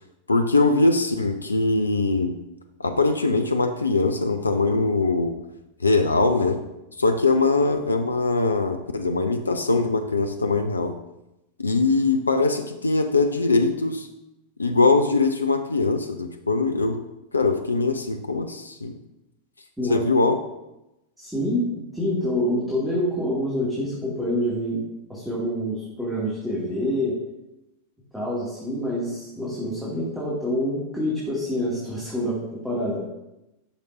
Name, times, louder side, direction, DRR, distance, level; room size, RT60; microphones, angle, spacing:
voice 1, 0.3-2.3 2.8-5.4 5.8-6.6 7.0-10.9 11.6-14.1 14.6-17.0 17.3-19.0 19.9-20.4, left 3 dB, 80° left, 7 dB, 0.5 m, -22 dB
voice 2, 21.2-24.8 25.1-27.1 28.1-32.4 32.6-33.0, equal, 5° right, -8 dB, 2.3 m, -26 dB
10.0 x 6.7 x 2.6 m, 0.94 s
figure-of-eight pair, 90°, 0 cm